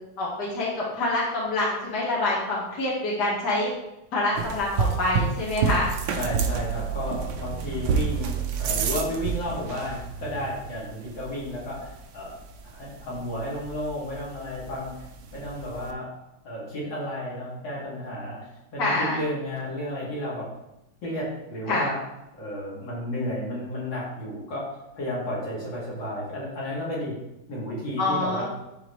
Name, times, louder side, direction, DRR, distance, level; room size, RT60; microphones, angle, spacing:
voice 1, 0.2-3.7 4.1-5.9 18.8-19.2 21.7-21.9 28.0-28.4, left 2 dB, 60° left, -5 dB, 2.3 m, -26 dB
sound 1, 4.4-15.9, right 6 dB, 80° right, 1.4 m, -30 dB
voice 2, 6.1-12.3 12.6-15.1 15.3-16.1 16.4-20.5 21.0-22.0 22.4-24.6 24.9-27.1 27.5-28.4, left 1 dB, 90° left, -6 dB, 3.1 m, -32 dB
11.5 x 4.0 x 3.2 m, 0.91 s
omnidirectional pair, 2.1 m